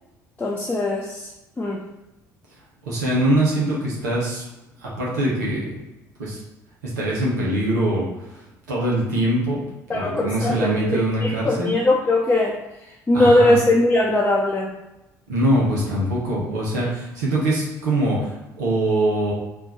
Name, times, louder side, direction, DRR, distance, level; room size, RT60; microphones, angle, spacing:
voice 1, 0.4-1.3 1.6-1.8 9.9-12.6 13.1-14.7, left 1 dB, 15° left, -3 dB, 0.7 m, -20 dB
voice 2, 2.8-4.4 4.8-5.8 6.2-6.4 6.8-8.4 8.7-9.6 9.9-11.8 13.1-13.6 15.3-19.3, right 1 dB, 75° right, -5 dB, 1.1 m, -23 dB
4.3 x 2.7 x 4.2 m, 0.94 s
figure-of-eight pair, 55°, 10 cm